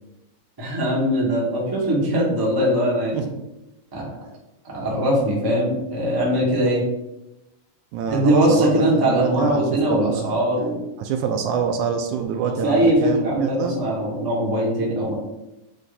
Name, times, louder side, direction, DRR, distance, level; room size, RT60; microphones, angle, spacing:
voice 1, 0.6-3.2 3.9-4.1 4.6-6.8 8.1-10.8 12.4-15.1, equal, 20° right, -5 dB, 0.5 m, -21 dB
voice 2, 7.9-10.4 11.0-13.8, right 7 dB, 80° right, 6 dB, 1.9 m, -26 dB
7.3 x 3.3 x 4.1 m, 0.92 s
omnidirectional pair, 3.6 m